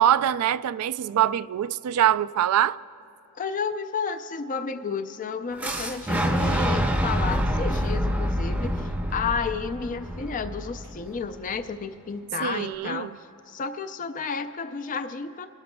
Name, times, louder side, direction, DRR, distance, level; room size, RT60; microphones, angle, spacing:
voice 1, 0.0-2.8 12.4-13.2, right 11 dB, 85° right, 0.3 m, -23 dB
voice 2, 3.3-15.5, left 5 dB, 40° left, 0.4 m, -32 dB
Fire / Explosion, 5.6-11.5, equal, 5° right, 0.6 m, -26 dB
25.5 x 13.0 x 2.2 m
head